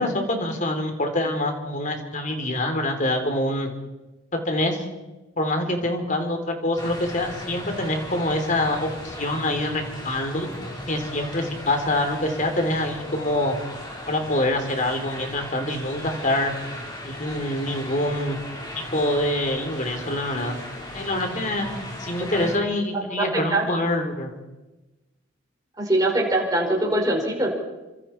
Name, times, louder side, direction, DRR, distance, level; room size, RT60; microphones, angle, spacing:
voice 1, 0.0-3.7 4.3-4.8 5.4-10.5 10.9-13.6 14.1-16.5 17.0-18.4 18.7-20.6 20.9-21.7 22.0-24.4, left 1 dB, 35° left, 5 dB, 3.3 m, -25 dB
sound 1, 6.8-22.6, left 1 dB, 20° left, 4.2 m, -37 dB
voice 2, 23.1-23.7 25.8-27.5, right 1 dB, 20° right, -1 dB, 5.3 m, -23 dB
28.0 x 25.5 x 4.5 m, 1.1 s
head